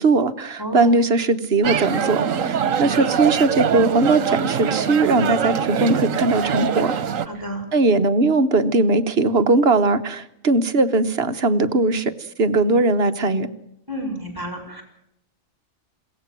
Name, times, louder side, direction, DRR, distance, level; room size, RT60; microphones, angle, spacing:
voice 1, 0.0-6.9 7.7-12.1 12.4-13.5, right 3 dB, 55° right, 9 dB, 1.3 m, -19 dB
voice 2, 0.6-1.0 7.3-7.7 13.9-14.8, right 1 dB, 15° right, 4 dB, 5.2 m, -30 dB
sound 1, 1.6-7.3, right 7 dB, 80° right, 1.4 m, -23 dB
21.5 x 17.5 x 7.5 m, 0.78 s
omnidirectional pair, 1.3 m